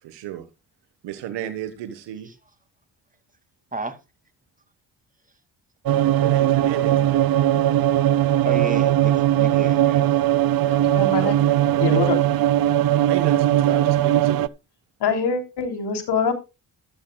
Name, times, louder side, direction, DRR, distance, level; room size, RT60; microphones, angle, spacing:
voice 1, 0.0-0.5 1.0-2.3 6.2-7.3 11.2-12.0 13.1-14.5, right 11 dB, 85° right, 1.5 m, -33 dB
sound 1, 5.9-14.5, right 12 dB, 60° right, 0.7 m, -19 dB
voice 2, 8.4-10.5, right 3 dB, 20° right, 2.5 m, -33 dB
voice 3, 10.6-11.4 11.8-12.2 15.0-16.3, left 5 dB, 75° left, 3.3 m, -24 dB
13.5 x 13.0 x 2.4 m
cardioid pair, 65°, 41 cm